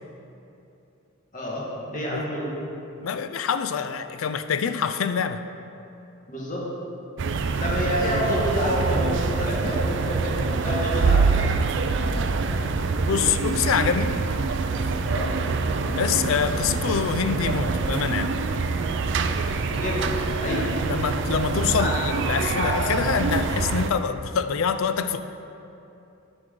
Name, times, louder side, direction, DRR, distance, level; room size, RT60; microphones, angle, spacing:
voice 1, 1.3-2.5 6.3-6.6 7.6-11.5 15.0-15.3 19.7-20.1 20.4-20.7 21.7-21.9 22.6-22.9, equal, 35° left, -5 dB, 1.6 m, -28 dB
voice 2, 3.0-5.4 13.0-14.2 15.9-18.4 20.6-25.2, left 6 dB, 65° left, 10 dB, 0.4 m, -26 dB
sound 1, 7.2-23.9, right 4 dB, 55° right, 0.4 m, -25 dB
11.0 x 6.1 x 3.7 m, 2.8 s
head